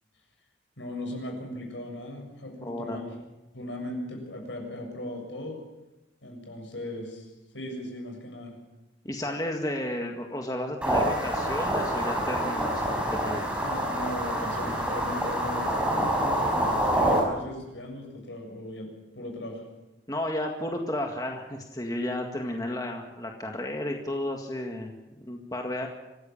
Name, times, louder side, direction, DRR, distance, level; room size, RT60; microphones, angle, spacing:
voice 1, 0.8-3.0 3.5-5.6 6.2-7.3 7.5-8.6 13.6-19.6, left 1 dB, 75° left, 2 dB, 7.2 m, -38 dB
voice 2, 2.6-3.1 9.0-13.6 20.1-25.9, left 1 dB, 20° left, 2 dB, 1.9 m, -33 dB
sound 1, 10.8-17.2, right 1 dB, 5° right, 5.4 m, -27 dB
25.0 x 16.0 x 7.2 m, 1.0 s
head